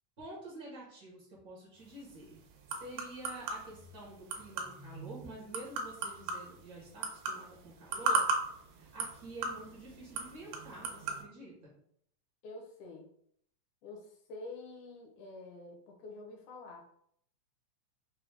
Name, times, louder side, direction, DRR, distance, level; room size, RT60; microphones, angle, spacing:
voice 1, 0.2-2.4 2.7-8.2 8.8-11.7, right 2 dB, 65° right, -4 dB, 0.9 m, -48 dB
sound 1, 1.8-11.2, right 3 dB, 85° right, 2.3 m, -38 dB
voice 2, 12.4-13.1 13.8-16.8, left 2 dB, 75° left, 1 dB, 2.1 m, -47 dB
5.8 x 2.2 x 3.4 m, 0.67 s
omnidirectional pair, 3.7 m